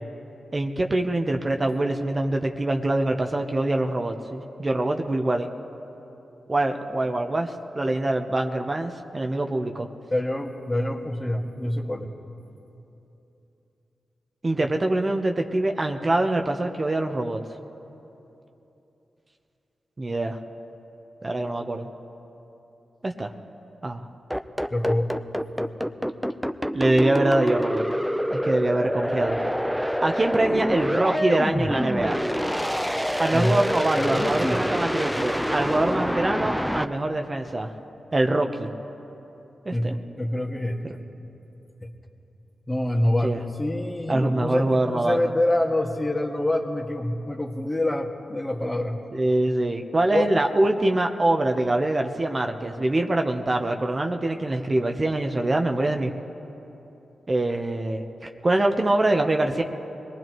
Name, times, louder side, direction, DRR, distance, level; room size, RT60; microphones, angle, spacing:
voice 1, 0.5-5.5 6.5-9.9 14.4-17.4 20.0-20.4 21.2-21.9 23.0-23.3 23.8-24.1 26.7-27.8 28.3-29.7 30.0-32.2 33.2-37.7 38.1-38.7 39.6-39.9 43.2-43.4 44.1-45.2 49.1-56.1 57.3-59.6, right 2 dB, 35° right, 4 dB, 0.9 m, -24 dB
voice 2, 10.1-12.1 24.7-25.1 33.3-33.5 33.9-34.6 39.7-41.0 41.8-41.9 42.7-49.0 50.1-50.3, left 1 dB, 25° left, 1 dB, 1.8 m, -26 dB
sound 1, 24.3-36.8, equal, ahead, 0.7 m, -26 dB
23.5 x 19.0 x 3.1 m, 3.0 s
cardioid pair, 45°, 0 cm